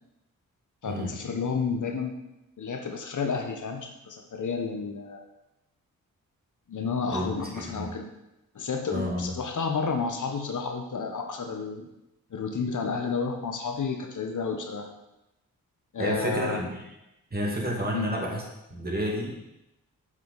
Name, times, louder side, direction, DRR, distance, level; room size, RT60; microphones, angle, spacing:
voice 1, 0.8-2.1 2.6-5.2 6.7-8.1 8.5-11.9 12.3-14.9 15.9-16.6 17.9-18.1, left 5 dB, 55° left, 4 dB, 1.2 m, -31 dB
voice 2, 7.1-7.9 8.9-9.3 16.0-16.9 17.3-18.4 18.7-19.4, equal, 25° right, -2 dB, 2.2 m, -30 dB
7.3 x 4.9 x 4.1 m, 0.91 s
cardioid pair, 55°, 36 cm